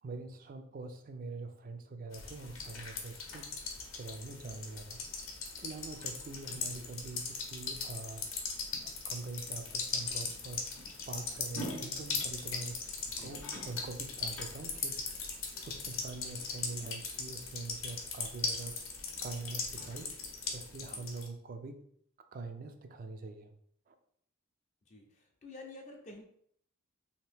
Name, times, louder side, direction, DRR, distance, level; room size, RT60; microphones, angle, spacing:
voice 1, 0.0-3.5 3.8-5.3 5.6-8.2 8.8-10.7 11.1-15.0 15.6-18.8 19.2-20.1 20.5-21.8 22.3-23.5 23.9-24.0, right 3 dB, 40° right, 7 dB, 0.3 m, -44 dB
sound 1, 2.1-21.3, left 4 dB, 75° left, 0.7 m, -39 dB
voice 2, 24.9-26.2, left 2 dB, 35° left, 1 dB, 0.5 m, -50 dB
2.8 x 2.6 x 3.3 m, 0.67 s
head